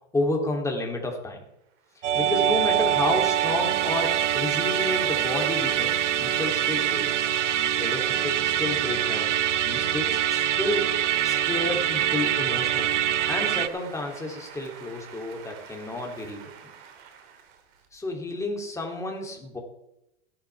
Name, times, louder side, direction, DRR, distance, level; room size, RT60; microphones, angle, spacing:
voice 1, 0.1-1.4 2.1-5.9 6.2-7.3 7.8-9.3 9.6-10.9 11.2-12.9 13.3-16.5 17.9-19.6, left 2 dB, 10° left, 0 dB, 3.2 m, -31 dB
sound 1, 1.7-18.4, right 7 dB, 55° right, 2.8 m, -47 dB
Musical instrument, 2.0-13.7, right 11 dB, 80° right, 0.9 m, -24 dB
17.0 x 11.5 x 3.6 m, 0.83 s
hypercardioid pair, 110°, 36 cm